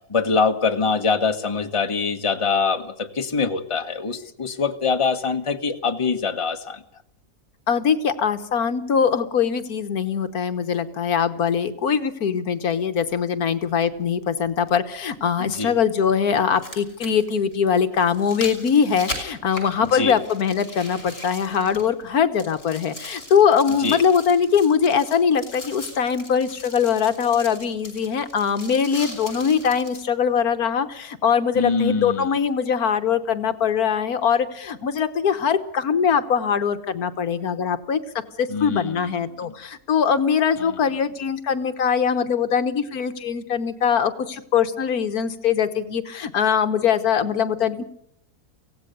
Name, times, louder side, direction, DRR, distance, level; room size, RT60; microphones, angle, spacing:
voice 1, 0.1-6.8 15.4-15.7 19.9-20.1 23.8-24.0 31.5-32.3 38.5-39.1, left 5 dB, 20° left, 5 dB, 1.3 m, -24 dB
voice 2, 7.7-38.0 38.4-47.8, left 7 dB, 70° left, 10 dB, 1.6 m, -22 dB
sound 1, 15.1-15.2 16.4-22.1 22.4-30.1 30.6-30.7, left 1 dB, 50° left, 6.5 m, -39 dB
24.0 x 17.0 x 6.8 m, 0.71 s
omnidirectional pair, 1.7 m